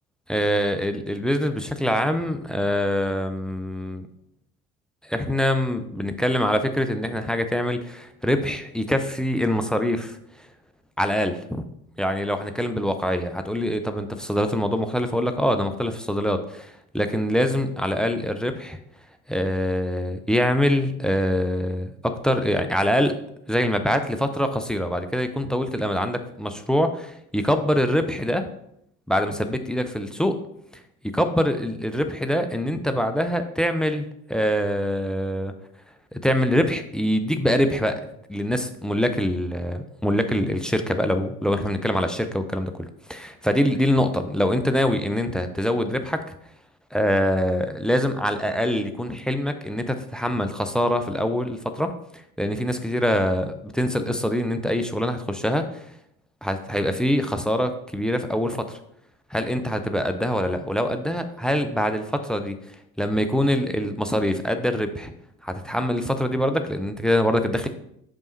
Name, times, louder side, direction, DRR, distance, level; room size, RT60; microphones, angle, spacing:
voice 1, 0.3-4.1 5.0-10.2 11.0-11.6 12.0-18.8 19.3-23.2 23.5-28.4 29.1-30.4 31.1-35.5 36.1-38.0 38.3-46.2 46.9-51.9 52.4-55.8 56.4-58.8 59.3-62.6 63.0-65.1 65.4-67.7, equal, ahead, 8 dB, 0.3 m, -24 dB
6.0 x 5.2 x 3.0 m, 0.73 s
figure-of-eight pair, 55°, 43 cm